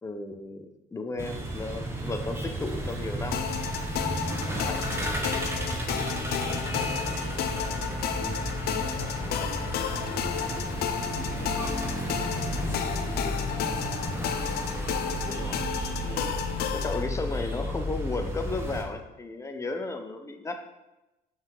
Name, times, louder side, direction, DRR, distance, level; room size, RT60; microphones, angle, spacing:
voice 1, 0.0-3.5 4.2-5.4 9.2-9.5 15.3-15.7 16.0-16.4 16.7-20.7, left 2 dB, 15° left, 6 dB, 0.8 m, -35 dB
sound 1, 1.2-18.8, right 1 dB, 15° right, 1.2 m, -33 dB
sound 2, 3.3-17.0, left 8 dB, 70° left, 0.6 m, -32 dB
voice 2, 6.3-14.4, left 2 dB, 50° left, -7 dB, 2.4 m, -42 dB
5.7 x 5.6 x 4.6 m, 0.97 s
cardioid pair, 110°, 17 cm